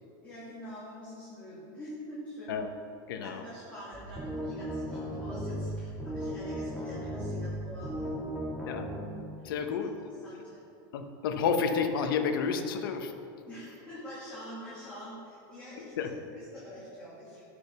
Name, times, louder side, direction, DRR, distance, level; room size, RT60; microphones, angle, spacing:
voice 1, 0.2-2.6 3.2-8.1 9.4-9.5 10.2-10.6 13.5-17.4, equal, 10° left, -10 dB, 2.3 m, -45 dB
voice 2, 3.1-3.4 8.7-8.9 9.4-10.0 10.9-13.1 15.8-16.2, left 6 dB, 80° left, 6 dB, 1.0 m, -30 dB
sound 1, 3.9-9.0, equal, 5° right, 1.5 m, -36 dB
12.0 x 5.1 x 6.0 m, 2.7 s
supercardioid pair, 160°, 11 cm